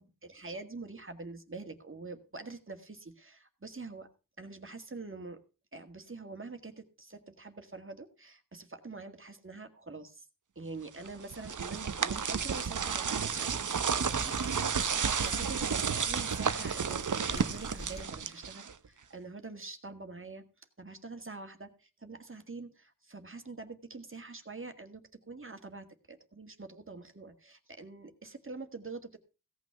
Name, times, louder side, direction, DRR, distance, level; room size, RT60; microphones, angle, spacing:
voice 1, 0.0-4.1 4.4-5.4 5.7-10.2 10.6-14.2 15.2-20.4 20.8-29.2, right 3 dB, 40° right, 6 dB, 1.9 m, -45 dB
sound 1, 11.0-18.9, right 6 dB, 65° right, 0.9 m, -32 dB
sound 2, 12.6-18.0, left 1 dB, 20° left, 2.4 m, -49 dB
16.5 x 6.3 x 6.7 m, 0.32 s
wide cardioid pair, 80°, 33 cm